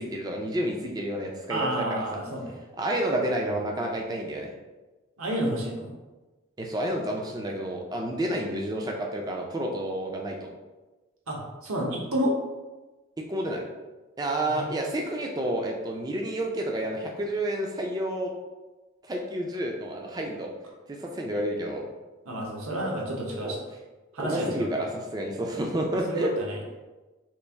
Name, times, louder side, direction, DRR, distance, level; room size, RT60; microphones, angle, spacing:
voice 1, 0.0-2.2 2.8-4.5 6.6-10.5 13.3-13.6 14.2-18.3 19.0-20.5 20.9-21.8 23.4-23.5 24.2-26.3, right 1 dB, 20° right, 1 dB, 0.3 m, -30 dB
voice 2, 1.5-2.6 5.2-5.9 11.3-12.3 14.5-14.8 22.3-23.6 24.1-24.7 26.1-26.6, right 1 dB, 80° right, -1 dB, 0.8 m, -30 dB
3.1 x 2.5 x 3.4 m, 1.2 s
head